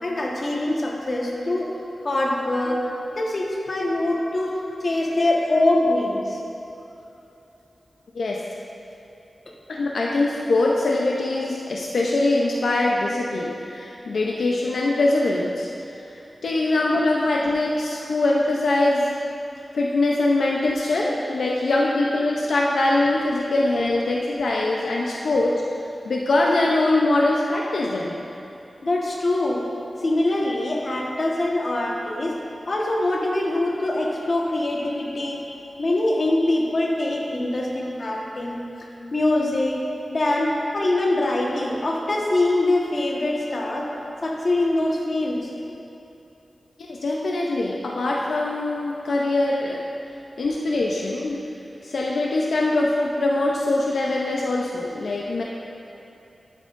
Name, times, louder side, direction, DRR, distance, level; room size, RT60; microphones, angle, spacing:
voice 1, 0.0-1.8 2.0-6.4 18.0-18.1 21.0-21.1 28.8-29.6 30.0-32.4 32.7-35.4 35.8-38.6 39.1-39.8 40.1-43.9 44.2-45.5, left 1 dB, 50° left, -2 dB, 1.4 m, -23 dB
voice 2, 4.0-4.3 5.1-5.3 5.8-5.9 8.1-8.4 9.7-15.7 16.4-19.1 19.7-25.6 26.0-28.2 44.0-44.1 46.8-49.8 50.4-51.4 51.8-55.4, left 2 dB, 85° left, -3 dB, 0.7 m, -23 dB
11.0 x 9.0 x 2.6 m, 2.9 s
wide cardioid pair, 105°, 0 cm